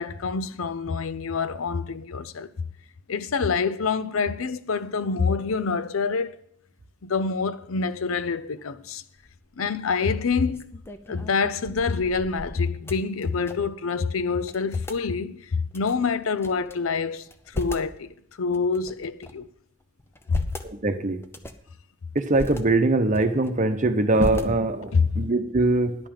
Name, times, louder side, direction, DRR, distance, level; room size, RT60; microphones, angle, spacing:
voice 1, 0.0-2.7 3.1-6.4 7.0-9.0 9.6-10.7 11.1-18.1 18.4-19.5 20.3-20.5 24.9-25.2, left 5 dB, 90° left, 0.6 m, -26 dB
sound 1, 9.2-9.5 10.0-13.8 14.1-14.2 14.4-15.0 15.7-16.7 17.2-17.9 18.5-19.5 20.0-20.7 21.2-21.7 22.2-22.6 23.1-23.7 24.2-24.9, left 1 dB, 10° left, 0.7 m, -37 dB
voice 2, 20.6-21.2 22.1-26.0, right 2 dB, 40° right, 0.9 m, -22 dB
10.5 x 5.6 x 8.8 m
head